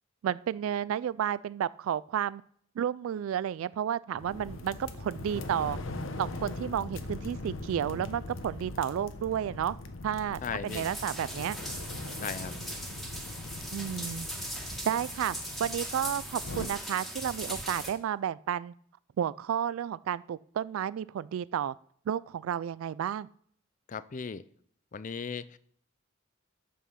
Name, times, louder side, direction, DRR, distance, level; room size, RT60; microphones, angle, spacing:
voice 1, 0.2-2.4 2.8-5.8 6.2-9.8 10.0-11.6 13.7-14.3 14.8-18.7 19.2-21.7 22.1-23.3, right 9 dB, 85° right, 19 dB, 0.3 m, -32 dB
sound 1, 4.2-16.7, left 2 dB, 75° left, 0.9 m, -41 dB
voice 2, 10.4-10.9 12.2-12.5 23.9-24.4 24.9-25.6, left 6 dB, 40° left, 17 dB, 0.4 m, -37 dB
sound 2, 10.7-17.9, equal, ahead, 1.7 m, -39 dB
8.3 x 7.3 x 5.7 m, 0.63 s
head